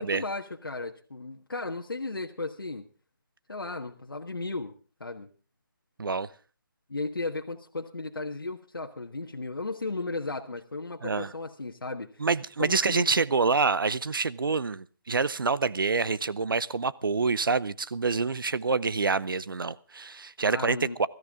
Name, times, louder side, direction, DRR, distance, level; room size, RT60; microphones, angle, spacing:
voice 1, 0.0-2.9 3.5-4.7 5.0-5.3 6.9-12.3 12.6-13.1 20.5-21.0, left 3 dB, 85° left, 1.5 m, -35 dB
voice 2, 12.2-21.1, right 4 dB, 75° right, 0.7 m, -27 dB
22.5 x 14.0 x 3.7 m
figure-of-eight pair, 150°, 11 cm